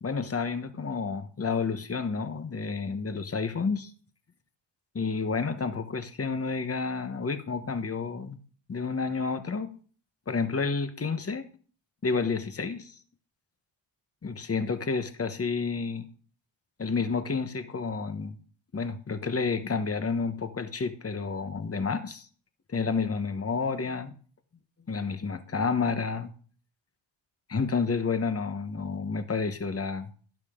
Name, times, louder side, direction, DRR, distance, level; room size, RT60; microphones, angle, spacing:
voice 1, 0.0-3.9 4.9-8.4 8.7-9.7 10.3-11.5 12.0-12.9 14.2-16.1 16.8-18.4 18.7-22.3 22.7-24.1 24.9-26.3 27.5-30.1, left 4 dB, 30° left, 1.1 m, -30 dB
12.0 x 11.5 x 3.7 m
wide cardioid pair, 115°, 47 cm